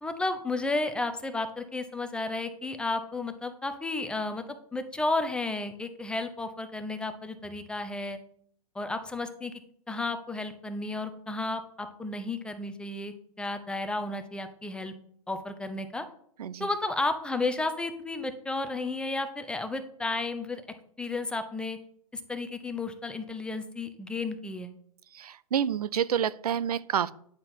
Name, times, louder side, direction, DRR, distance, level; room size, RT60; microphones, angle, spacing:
voice 1, 0.0-4.4 4.7-8.2 8.7-9.5 9.9-14.9 15.3-16.0 16.6-20.6 21.0-21.8 22.1-24.7, left 2 dB, 5° left, 9 dB, 0.6 m, -32 dB
voice 2, 25.1-27.1, right 9 dB, 85° right, 18 dB, 0.5 m, -28 dB
9.5 x 4.4 x 3.7 m, 0.64 s
hypercardioid pair, 125°, 19 cm